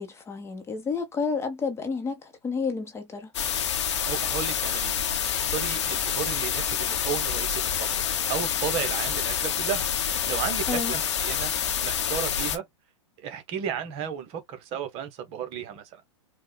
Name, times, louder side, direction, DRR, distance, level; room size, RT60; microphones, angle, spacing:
voice 1, 0.0-3.3 10.7-10.9, left 5 dB, 15° left, 0.9 m, -30 dB
sound 1, 3.3-12.6, left 8 dB, 65° left, 0.9 m, -27 dB
voice 2, 4.0-5.0 5.3-8.0 8.3-11.5 11.8-12.6 13.2-16.0, right 8 dB, 40° right, 1.0 m, -34 dB
4.7 x 2.2 x 2.2 m
hypercardioid pair, 110°, 16 cm